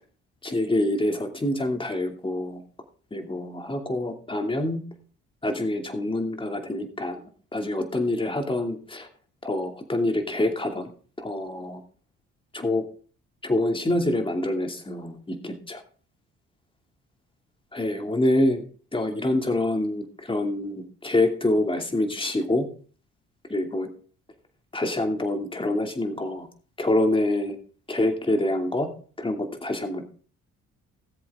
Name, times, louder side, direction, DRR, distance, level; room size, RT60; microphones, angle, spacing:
voice 1, 0.4-2.6 3.1-4.8 5.4-7.2 7.5-9.1 9.4-10.9 11.2-11.8 12.5-12.8 13.4-15.8 17.7-18.6 18.9-22.7 23.5-23.9 24.7-26.5 26.8-27.6 27.9-28.9 29.2-30.0, left 1 dB, 15° left, 4 dB, 2.6 m, -26 dB
18.5 x 7.7 x 3.7 m, 0.41 s
cardioid pair, 90°, 30 cm